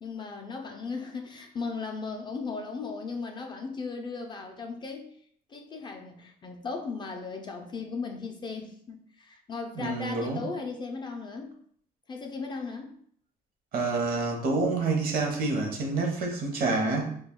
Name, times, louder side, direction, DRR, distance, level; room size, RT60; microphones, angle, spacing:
voice 1, 0.0-5.2 5.5-11.6 12.1-13.0, left 4 dB, 25° left, 3 dB, 0.4 m, -37 dB
voice 2, 9.8-10.4 13.7-17.2, right 3 dB, 60° right, 2 dB, 0.7 m, -28 dB
2.3 x 2.2 x 3.5 m, 0.62 s
cardioid pair, 110°, 17 cm